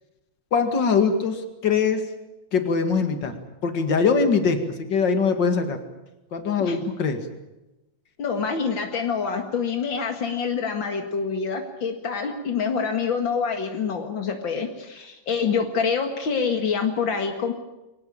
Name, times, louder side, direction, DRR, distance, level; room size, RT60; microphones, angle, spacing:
voice 1, 0.5-2.1 2.5-3.4 3.6-5.8 6.3-7.2, left 5 dB, 45° left, 7 dB, 1.4 m, -22 dB
voice 2, 8.2-17.5, left 5 dB, 70° left, 4 dB, 1.1 m, -26 dB
24.0 x 19.0 x 8.6 m, 0.98 s
omnidirectional pair, 5.4 m